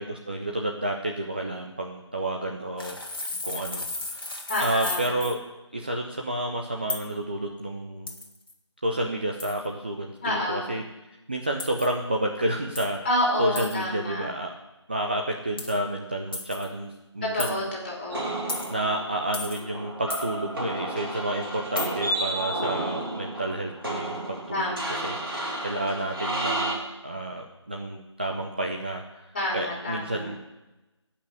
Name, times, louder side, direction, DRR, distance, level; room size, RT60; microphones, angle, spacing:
voice 1, 0.0-3.0 3.4-4.3 4.6-5.4 5.7-8.1 8.8-10.8 11.3-13.0 13.4-14.5 14.9-17.6 18.7-24.7 25.0-30.4, right 1 dB, 20° right, 1 dB, 0.6 m, -30 dB
sound 1, 2.8-5.4 6.9-7.1 8.1-8.5 9.4-9.7 11.6-11.9 12.8-13.0 13.6-13.8 15.6-15.8 16.3-16.7 17.4-17.6 18.5-18.7 19.3-19.6 20.1-20.3 21.8-21.9, left 2 dB, 45° left, 1.7 m, -34 dB
voice 2, 4.5-5.1 10.2-10.7 13.0-14.3 17.2-18.4 22.4-22.7 24.5-25.0 29.3-30.3, left 1 dB, 20° left, -3 dB, 3.1 m, -29 dB
sound 2, 18.1-26.8, right 1 dB, 50° right, 4.3 m, -32 dB
15.5 x 5.8 x 8.3 m, 1.0 s
figure-of-eight pair, 165°, 16 cm